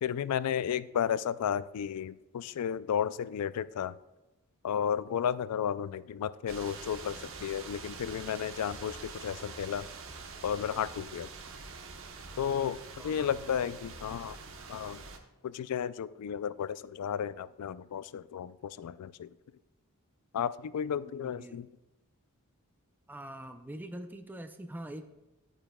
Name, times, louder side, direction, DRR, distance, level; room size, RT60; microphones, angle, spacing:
voice 1, 0.0-4.0 4.6-9.9 10.4-11.3 12.4-14.4 14.7-15.0 15.4-19.4 20.3-21.7, left 8 dB, 90° left, 16 dB, 0.3 m, -33 dB
sound 1, 6.5-15.2, right 4 dB, 65° right, 0.9 m, -45 dB
voice 2, 13.0-13.3 21.2-21.6 23.1-25.0, right 1 dB, 10° right, 6 dB, 0.4 m, -43 dB
11.0 x 8.9 x 2.3 m, 1.0 s
head